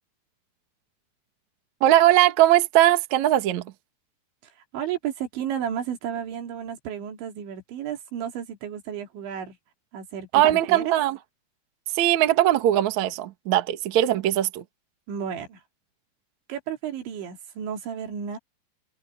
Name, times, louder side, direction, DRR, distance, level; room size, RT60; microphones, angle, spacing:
voice 1, 1.8-3.6 10.3-11.2 12.0-14.6, right 13 dB, 60° right, 2.0 m, -20 dB
voice 2, 4.7-9.6 9.9-10.9 15.1-15.6 16.5-18.4, right 9 dB, 80° right, 5.2 m, -32 dB
omnidirectional pair, 5.2 m